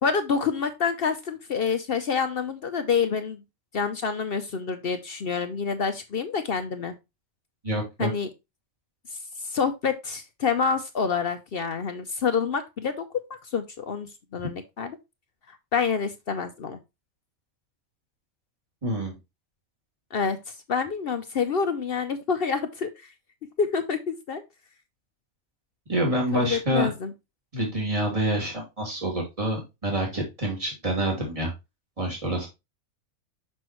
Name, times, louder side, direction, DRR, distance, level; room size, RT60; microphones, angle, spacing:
voice 1, 0.0-3.4 3.7-6.9 8.0-8.3 9.1-14.9 15.5-16.8 20.1-20.4 20.7-23.1 23.6-24.4 26.3-27.1, left 5 dB, 55° left, 8 dB, 0.7 m, -27 dB
voice 2, 7.6-8.1 18.8-19.2 25.9-26.9 27.5-31.5 32.0-32.5, right 1 dB, 25° right, -2 dB, 2.8 m, -27 dB
6.3 x 6.0 x 3.0 m, 0.23 s
omnidirectional pair, 1.4 m